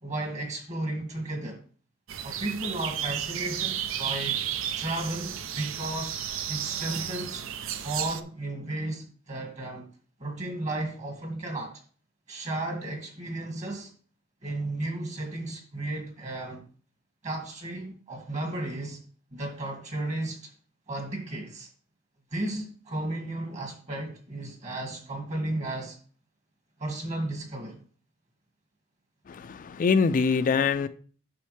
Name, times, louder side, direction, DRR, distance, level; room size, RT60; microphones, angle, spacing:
voice 1, 0.0-1.6 2.2-4.4 4.8-6.2 6.5-7.4 7.8-9.9 10.2-11.8 12.3-13.9 14.4-16.6 17.2-19.0 19.3-20.5 20.9-21.7 22.3-26.0 26.8-27.8, right 2 dB, 35° right, 2.1 m, -34 dB
sound 1, 2.1-8.2, right 9 dB, 70° right, 0.5 m, -33 dB
voice 2, 29.3-30.9, left 5 dB, 40° left, 0.3 m, -24 dB
8.5 x 6.3 x 3.2 m
head